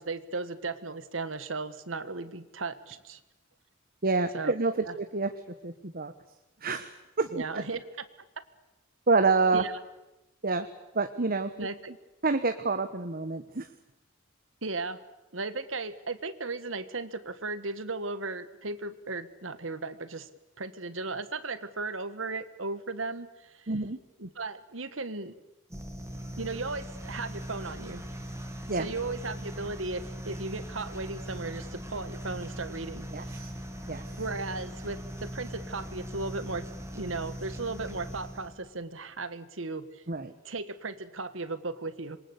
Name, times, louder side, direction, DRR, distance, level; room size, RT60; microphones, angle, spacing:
voice 1, 0.0-3.2 4.3-4.5 4.8-5.0 7.3-8.0 9.5-9.7 11.6-11.9 14.6-15.0 15.3-20.3 20.6-23.7 24.2-25.4 26.4-28.0 28.7-33.4 34.2-36.7 36.9-40.0 40.4-42.2, right 3 dB, 70° right, 12 dB, 1.7 m, -36 dB
voice 2, 4.0-5.3 5.6-6.1 6.6-6.9 7.2-7.3 9.1-9.6 10.4-10.7 10.9-11.7 12.2-13.7 23.7-24.0 28.7-28.9 33.1-33.5 33.9-34.0 40.1-40.3, right 3 dB, 50° right, 8 dB, 1.3 m, -27 dB
sound 1, 25.7-38.7, equal, 15° right, 2.9 m, -40 dB
27.0 x 23.5 x 8.3 m, 0.98 s
head